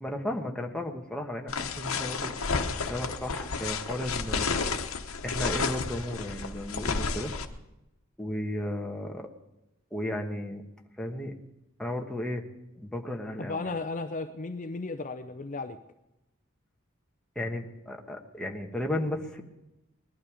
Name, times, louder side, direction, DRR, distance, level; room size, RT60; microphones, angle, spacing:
voice 1, 0.0-4.5 5.2-7.3 8.2-9.3 9.9-10.6 11.0-11.3 11.8-12.4 12.8-13.7 17.3-19.4, left 1 dB, 5° left, 1 dB, 1.3 m, -34 dB
sound 1, 1.5-7.4, left 4 dB, 90° left, 1.0 m, -31 dB
voice 2, 13.4-15.8, left 3 dB, 40° left, 8 dB, 0.6 m, -34 dB
19.5 x 12.0 x 5.0 m, 0.94 s
head